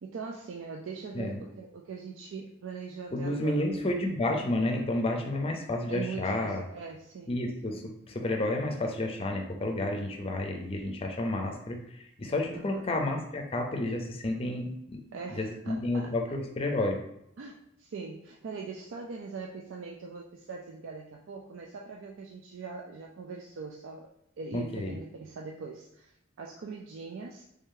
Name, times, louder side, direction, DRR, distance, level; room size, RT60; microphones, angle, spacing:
voice 1, 0.0-3.7 5.9-7.4 12.5-12.9 15.1-16.1 17.4-24.1 24.4-26.1 26.4-27.5, right 4 dB, 80° right, 0 dB, 0.4 m, -41 dB
voice 2, 3.1-6.6 7.3-7.8 8.1-11.8 12.2-15.0 15.4-17.0 24.5-25.0, left 1 dB, 30° left, 2 dB, 0.5 m, -30 dB
3.3 x 2.7 x 3.7 m, 0.79 s
head